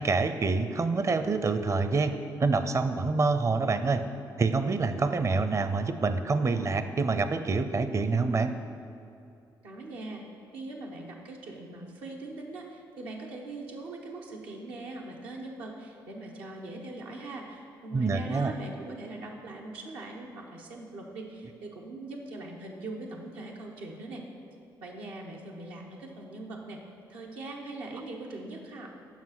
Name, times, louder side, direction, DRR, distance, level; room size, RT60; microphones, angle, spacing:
voice 1, 0.0-2.1 2.4-4.0 4.4-8.5 17.9-18.5, right 4 dB, 35° right, 10 dB, 0.6 m, -26 dB
voice 2, 9.6-10.2 10.5-24.3 24.8-26.8 27.1-28.9, right 2 dB, 85° right, -1 dB, 1.0 m, -41 dB
7.4 x 5.7 x 5.8 m, 2.6 s
supercardioid pair, 65°, 9 cm